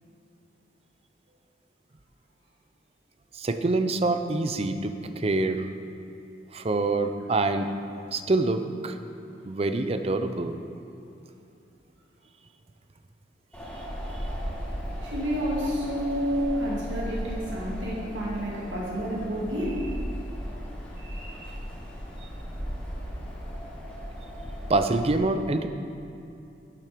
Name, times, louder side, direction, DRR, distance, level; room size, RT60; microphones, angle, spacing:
voice 1, 3.3-5.7 6.5-7.7 8.1-9.0 9.4-10.6 22.2-22.3 24.7-25.7, right 2 dB, 35° right, 8 dB, 0.5 m, -26 dB
Wind, 13.5-25.2, equal, 10° left, 1.9 m, -36 dB
voice 2, 15.0-20.0 21.0-21.5, equal, 90° right, -4 dB, 2.0 m, -30 dB
11.5 x 7.6 x 5.1 m, 2.7 s
head